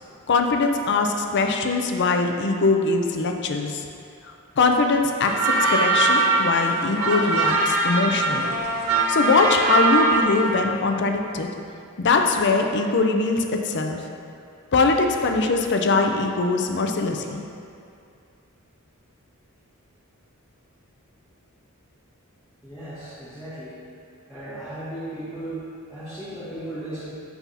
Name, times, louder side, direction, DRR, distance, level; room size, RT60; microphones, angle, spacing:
voice 1, 0.3-3.9 4.6-8.5 9.1-11.5 12.0-14.0 14.7-17.4, left 3 dB, 55° left, 4 dB, 0.5 m, -22 dB
sound 1, 5.3-10.6, right 3 dB, 75° right, 0.7 m, -22 dB
voice 2, 22.6-23.8 24.3-27.1, right 1 dB, 5° left, -15 dB, 1.5 m, -36 dB
8.1 x 5.6 x 2.8 m, 2.5 s
head